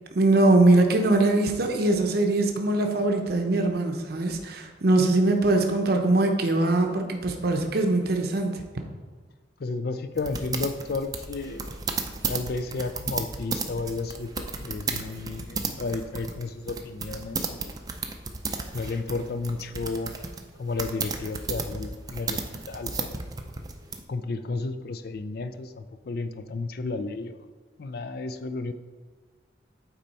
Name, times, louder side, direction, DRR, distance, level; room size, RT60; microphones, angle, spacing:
voice 1, 0.1-8.6, right 2 dB, 55° right, 3 dB, 0.7 m, -22 dB
voice 2, 9.6-11.7 12.3-17.7 18.7-20.1 20.6-23.2 24.1-27.4 27.8-28.7, left 3 dB, 55° left, 10 dB, 0.4 m, -32 dB
sound 1, 10.2-24.0, right 4 dB, 20° right, 0.5 m, -33 dB
8.8 x 4.3 x 4.1 m, 1.4 s
head